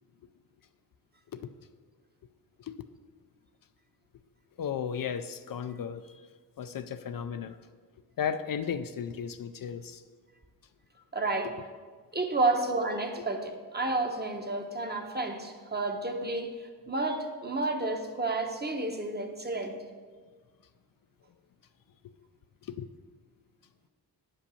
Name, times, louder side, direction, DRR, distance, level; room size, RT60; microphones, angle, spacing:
voice 1, 4.6-6.1 6.6-7.6 8.2-10.0 22.7-22.9, left 7 dB, 55° left, 10 dB, 0.5 m, -35 dB
voice 2, 11.1-11.5 12.1-16.5 16.9-19.7, right 2 dB, 25° right, 4 dB, 0.9 m, -30 dB
9.6 x 5.3 x 6.9 m, 1.5 s
wide cardioid pair, 135°, 41 cm